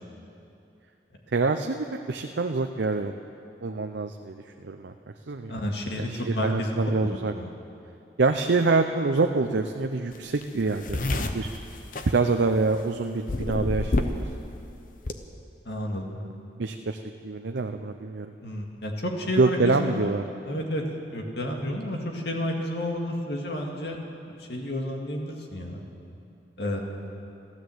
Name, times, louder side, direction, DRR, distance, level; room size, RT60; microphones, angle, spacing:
voice 1, 1.3-3.1 3.6-4.9 5.3-5.5 6.0-7.3 8.2-11.5 12.1-14.3 16.6-18.3 19.4-20.2, right 3 dB, 80° right, 5 dB, 0.6 m, -26 dB
voice 2, 5.5-6.8 7.3-7.5 15.7-16.1 18.4-20.1 20.5-20.8 21.1-24.0 24.3-25.8 26.6-26.8, left 1 dB, 70° left, 1 dB, 2.1 m, -31 dB
sound 1, 10.1-10.2 10.4-12.8 13.3-14.3 14.6-15.1, left 2 dB, 50° left, 0.8 m, -28 dB
14.0 x 13.0 x 7.9 m, 2.7 s
head